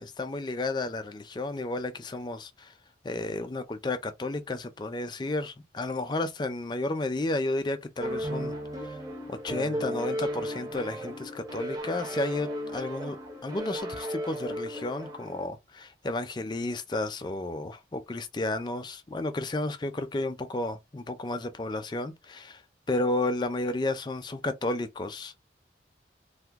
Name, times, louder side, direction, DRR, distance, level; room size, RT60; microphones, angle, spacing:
voice 1, 0.0-2.7 3.0-8.5 8.8-9.0 9.3-13.2 13.4-22.6 22.9-25.4, left 2 dB, 25° left, 0.4 m, -32 dB
sound 1, 8.0-15.5, equal, 20° right, 0.6 m, -35 dB
2.9 x 2.0 x 3.4 m
head